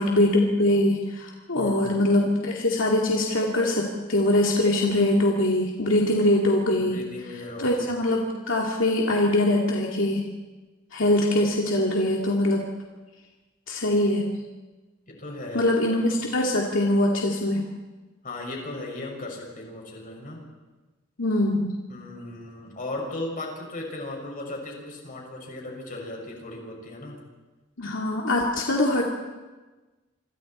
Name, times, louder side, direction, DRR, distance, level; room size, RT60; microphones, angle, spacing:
voice 1, 0.0-7.0 7.6-10.2 10.9-12.7 13.7-14.3 15.5-17.7 21.2-21.7 27.8-29.0, left 1 dB, 75° left, -1 dB, 2.5 m, -23 dB
voice 2, 1.5-1.9 6.8-7.9 15.1-16.0 18.2-20.4 21.9-27.1, left 2 dB, 45° left, 0 dB, 6.3 m, -36 dB
27.0 x 27.0 x 4.4 m, 1.2 s
head